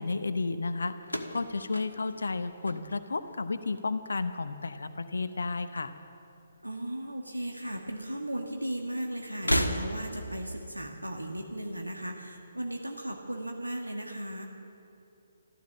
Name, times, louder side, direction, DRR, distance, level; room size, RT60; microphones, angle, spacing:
voice 1, 0.0-5.9, left 3 dB, 65° left, 11 dB, 0.7 m, -32 dB
sound 1, 1.0-3.4 3.7-4.3 5.3-6.3 6.6-6.7 7.8-7.9 9.3-10.3, equal, 85° left, 1.3 m, -33 dB
voice 2, 6.6-14.5, right 1 dB, 85° right, 2 dB, 1.5 m, -36 dB
14.0 x 13.5 x 7.4 m, 2.7 s
figure-of-eight pair, 135°, 0 cm